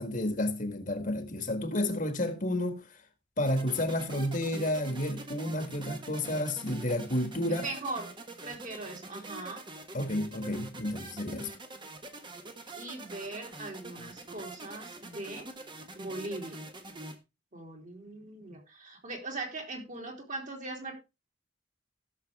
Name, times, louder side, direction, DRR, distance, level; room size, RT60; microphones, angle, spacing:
voice 1, 0.0-2.8 3.4-7.7 9.9-11.5, left 1 dB, 45° left, 1.7 m, -31 dB
sound 1, 3.5-17.2, right 2 dB, 25° right, 1.4 m, -45 dB
voice 2, 7.5-8.1 8.4-9.6 12.7-15.5 15.9-16.6 17.5-20.9, right 2 dB, 45° right, 3.3 m, -40 dB
16.0 x 6.6 x 3.5 m
head